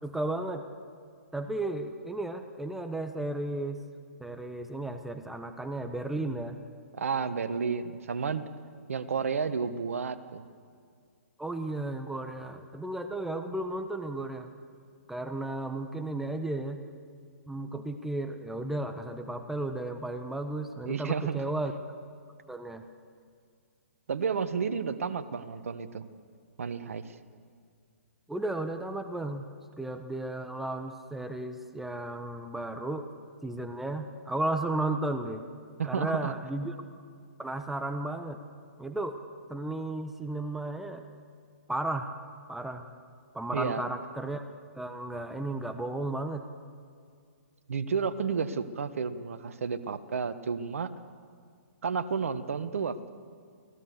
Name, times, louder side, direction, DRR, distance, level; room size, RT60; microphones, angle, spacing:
voice 1, 0.0-0.6 1.3-3.8 4.2-6.6 11.4-14.5 15.1-16.8 17.5-21.7 22.5-22.9 28.3-29.5 29.8-33.1 33.4-35.4 35.8-36.7 37.4-38.4 38.8-39.2 39.5-41.0 41.7-42.1 42.5-42.8 43.3-44.4 44.7-46.4, right 2 dB, 5° right, 7 dB, 1.1 m, -34 dB
voice 2, 6.9-8.4 8.9-10.4 20.9-21.5 24.1-26.0 26.6-27.1 35.8-36.3 43.5-43.8 47.7-50.9 51.8-53.1, right 6 dB, 70° right, 10 dB, 1.4 m, -31 dB
30.0 x 18.5 x 6.9 m, 2.2 s
hypercardioid pair, 135°, 8 cm